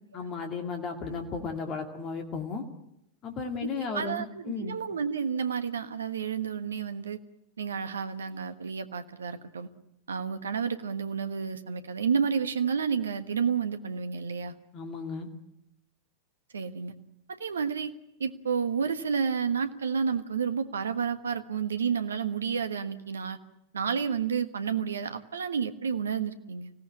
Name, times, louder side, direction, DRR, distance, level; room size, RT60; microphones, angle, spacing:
voice 1, 0.1-2.6 3.2-4.8 14.7-15.3, left 4 dB, 35° left, 4 dB, 2.3 m, -34 dB
voice 2, 3.6-7.2 7.6-9.7 10.1-14.5 16.5-16.9 17.4-17.9 18.2-23.4 23.7-26.7, right 6 dB, 70° right, 10 dB, 1.4 m, -30 dB
25.0 x 17.0 x 9.9 m, 0.86 s
figure-of-eight pair, 90°, 0 cm